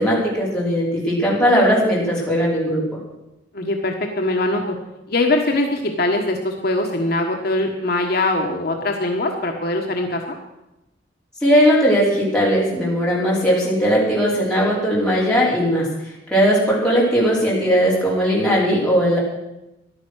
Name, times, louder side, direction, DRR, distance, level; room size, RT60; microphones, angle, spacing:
voice 1, 0.0-2.8 11.4-15.9 16.3-19.2, equal, 5° left, -6 dB, 4.8 m, -18 dB
voice 2, 3.5-4.8 5.1-10.4, left 2 dB, 55° left, 2 dB, 1.4 m, -22 dB
14.5 x 11.5 x 6.4 m, 0.93 s
head